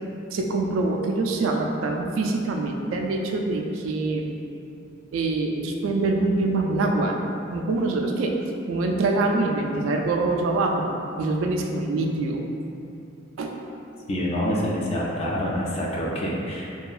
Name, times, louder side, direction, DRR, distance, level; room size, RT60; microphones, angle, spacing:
voice 1, 0.3-4.3 5.1-7.2 7.5-8.3 8.7-10.9 11.2-12.4 13.4-13.5, right 2 dB, 85° right, 2 dB, 0.3 m, -24 dB
voice 2, 14.1-16.8, equal, 30° left, -4 dB, 0.3 m, -26 dB
2.7 x 2.3 x 2.4 m, 2.7 s
head